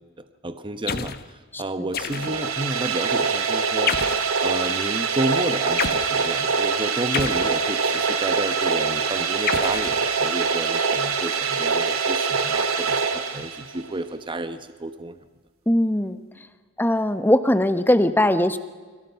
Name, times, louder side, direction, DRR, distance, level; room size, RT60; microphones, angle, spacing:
voice 1, 0.2-4.0 4.4-15.2, right 1 dB, 25° right, 9 dB, 1.1 m, -31 dB
sound 1, 0.9-1.3 1.9-2.6 3.9-4.3 5.8-6.1 7.1-8.0 9.5-10.5, left 6 dB, 50° left, 1.1 m, -29 dB
sound 2, 2.0-13.9, right 5 dB, 85° right, 2.6 m, -24 dB
voice 2, 15.7-16.2 16.8-18.6, left 1 dB, 10° left, 10 dB, 1.2 m, -20 dB
29.5 x 24.5 x 5.8 m, 1.4 s
head